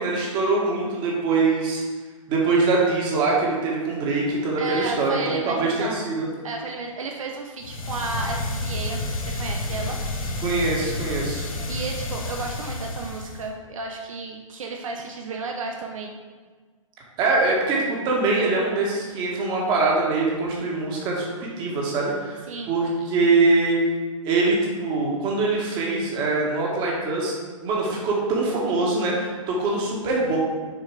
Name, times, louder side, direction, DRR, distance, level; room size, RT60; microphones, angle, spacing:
voice 1, 0.0-1.8 2.3-6.3 10.4-11.4 17.2-22.4 22.7-23.8 24.2-27.4 27.6-30.4, right 3 dB, 25° right, -3 dB, 1.9 m, -23 dB
voice 2, 4.5-6.0 6.4-10.0 11.5-16.1 22.5-22.8, right 3 dB, 70° right, 1 dB, 0.9 m, -33 dB
sound 1, 7.6-13.5, left 2 dB, 80° left, 1.2 m, -30 dB
7.0 x 4.5 x 4.9 m, 1.5 s
hypercardioid pair, 140°, 18 cm